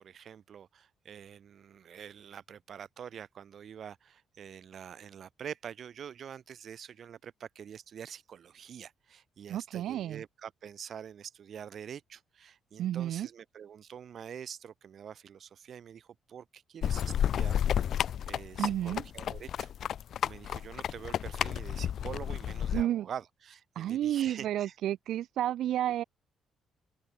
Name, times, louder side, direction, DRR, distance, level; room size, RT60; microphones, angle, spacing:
voice 1, 0.0-17.6 17.9-19.7 20.2-24.7, right 8 dB, 55° right, 2.6 m, -46 dB
voice 2, 9.5-10.2 12.8-13.3 18.6-19.0 22.7-23.1 23.8-26.0, right 12 dB, 75° right, 0.6 m, -31 dB
Horse Galloping, 16.8-22.8, left 9 dB, 65° left, 0.9 m, -31 dB
open air
cardioid pair, 90°, 0 cm